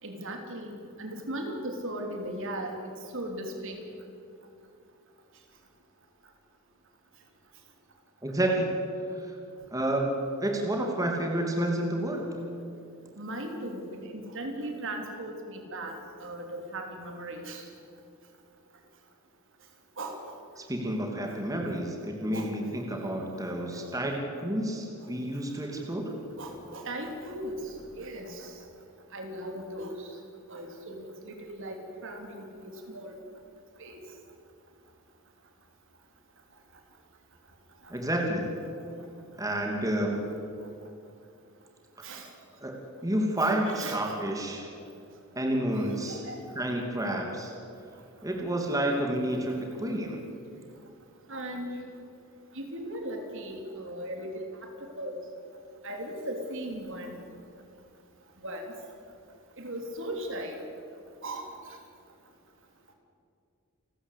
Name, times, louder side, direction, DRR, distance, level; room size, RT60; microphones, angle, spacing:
voice 1, 0.0-0.7 1.0-2.7 3.1-3.8 13.2-15.9 16.2-17.6 20.0-20.2 22.3-22.5 26.4-28.5 29.1-30.0 30.5-33.2 33.8-34.0 42.0-42.3 43.4-44.0 46.1-46.4 51.3-51.7 52.6-54.7 55.0-55.2 55.8-57.2 58.4-58.6 59.6-60.6 61.2-61.8, right 1 dB, 60° right, 3 dB, 3.5 m, -37 dB
voice 2, 8.2-8.7 9.1-9.4 9.7-12.4 20.6-26.1 37.9-38.6 39.4-40.3 42.6-42.8 43.0-44.7 45.3-46.2 46.5-47.5 48.2-50.2, right 1 dB, 15° right, 1 dB, 2.8 m, -30 dB
29.5 x 13.5 x 8.4 m, 2.6 s
head